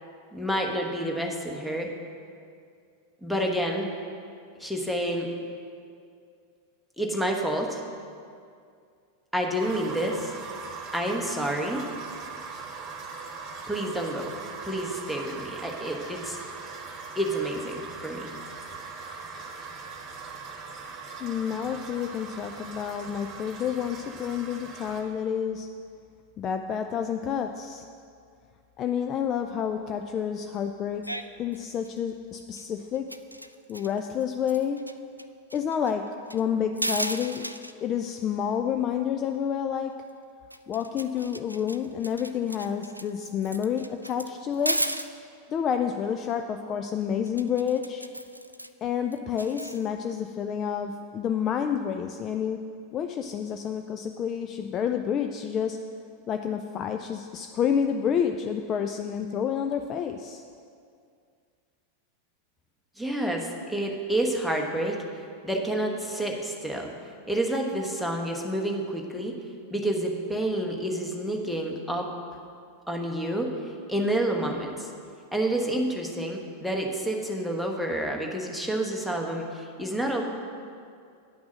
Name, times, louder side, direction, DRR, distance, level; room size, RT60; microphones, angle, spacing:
voice 1, 0.3-1.9 3.2-3.9 4.6-5.3 7.0-7.8 9.3-10.3 10.9-11.9 13.7-14.3 14.6-16.4 17.1-18.3 63.0-65.0 65.4-66.9 67.3-69.3 69.7-72.1 72.9-73.5 73.9-74.9 75.3-80.2, right 1 dB, ahead, 1 dB, 1.1 m, -29 dB
sound 1, 9.6-25.0, right 4 dB, 30° right, 1.3 m, -40 dB
voice 2, 21.2-25.7 26.4-27.9 28.8-31.0 31.4-33.1 33.7-34.8 35.5-36.0 36.3-37.4 37.8-39.9 40.7-44.8 45.5-48.0 48.8-52.6 52.9-55.8 56.3-60.4, left 8 dB, 30° left, 6 dB, 0.4 m, -29 dB
sound 2, 31.0-31.2 31.5-32.0 32.4-32.6 32.9-34.9 35.2-35.3 35.5-36.4 36.8-37.7 40.1-40.2 40.5-45.1 47.3-48.7 49.1-49.9, right 1 dB, 90° right, 0.3 m, -34 dB
9.6 x 6.0 x 6.2 m, 2.3 s
figure-of-eight pair, 90°, 0 cm